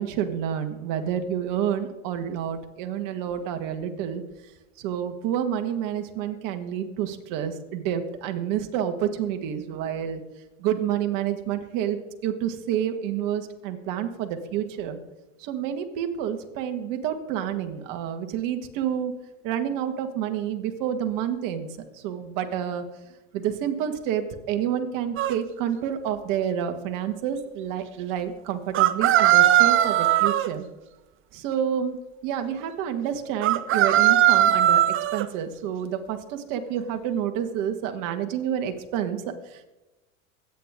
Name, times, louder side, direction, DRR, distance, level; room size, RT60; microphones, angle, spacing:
voice 1, 0.0-4.2 4.8-10.2 10.6-12.0 12.2-15.0 15.4-19.1 19.4-21.7 22.0-22.8 23.3-30.7 31.3-34.8 35.1-39.7, right 9 dB, 55° right, 6 dB, 1.8 m, -29 dB
sound 1, 25.2-25.3 28.7-30.5 33.4-35.3, right 12 dB, 35° right, 0.6 m, -19 dB
23.5 x 9.1 x 3.7 m, 1.0 s
hypercardioid pair, 100°, 38 cm